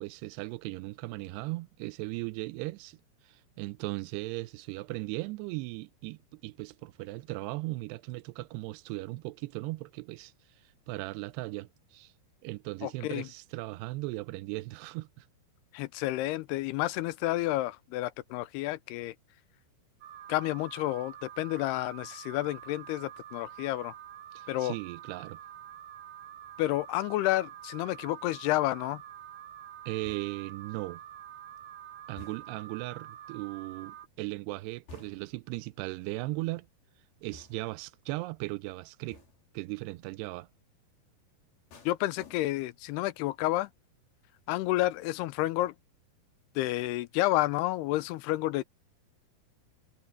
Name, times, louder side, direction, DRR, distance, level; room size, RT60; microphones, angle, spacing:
voice 1, 0.0-3.0 3.3-10.3 10.9-12.1 12.4-15.3 24.4-25.4 29.9-31.0 32.1-36.7 37.2-39.2 39.5-40.5, right 21 dB, 90° right, 2.7 m, -37 dB
voice 2, 12.8-13.3 15.7-19.2 20.3-23.9 24.5-24.8 26.6-29.0 41.9-43.7 44.5-45.8 46.6-48.6, left 16 dB, 90° left, 2.7 m, -30 dB
Alarm, 20.0-34.1, right 11 dB, 65° right, 2.7 m, -47 dB
sound 1, 30.0-30.6 32.2-32.7 34.9-35.5 37.3-37.9 39.1-39.6 41.7-42.8 43.2-43.6, left 4 dB, 65° left, 6.1 m, -54 dB
omnidirectional pair, 4.7 m